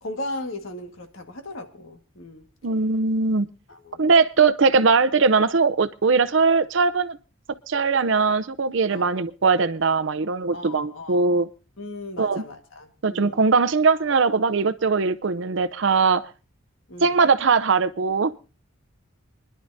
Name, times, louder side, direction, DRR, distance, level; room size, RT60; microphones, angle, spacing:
voice 1, 0.0-2.4 3.7-4.1 8.9-9.1 10.5-11.3 11.8-13.4 16.9-17.2, left 1 dB, 75° left, 5 dB, 1.7 m, -37 dB
voice 2, 2.6-3.5 4.0-7.2 7.7-11.5 12.2-12.4 13.0-16.2 17.0-18.3, right 4 dB, 60° right, 14 dB, 0.6 m, -20 dB
26.0 x 11.0 x 2.7 m, 0.33 s
head